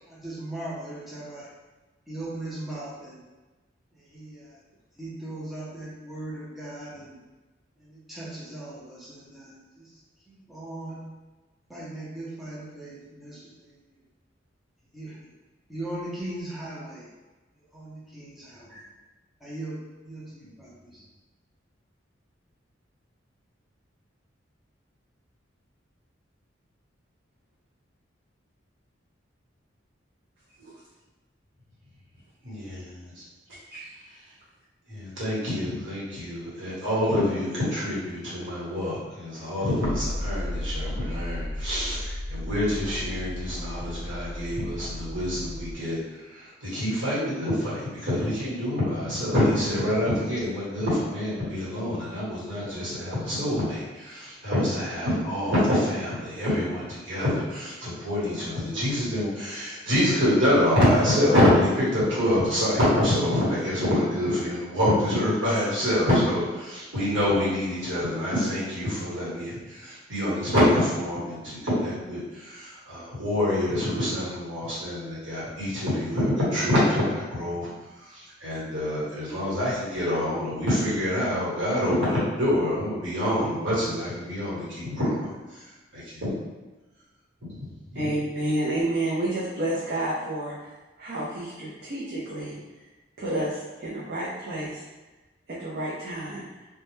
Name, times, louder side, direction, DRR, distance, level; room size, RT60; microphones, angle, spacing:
voice 1, 0.1-1.5 2.1-3.2 4.1-4.6 5.0-7.2 7.8-9.9 10.3-11.0 11.7-13.7 14.9-15.3 15.7-17.1 17.7-18.7 19.4-21.0, right 1 dB, ahead, -8 dB, 0.5 m, -38 dB
voice 2, 32.4-33.2 34.9-77.7 78.0-85.6 85.9-86.3 87.4-88.1, left 1 dB, 80° right, -9 dB, 1.2 m, -26 dB
sound 1, 39.8-45.7, left 1 dB, 80° left, 0.5 m, -34 dB
voice 3, 87.9-90.7 91.0-92.6 93.2-94.8 95.5-96.4, right 1 dB, 55° right, -8 dB, 0.5 m, -30 dB
2.2 x 2.1 x 3.0 m, 1.2 s
head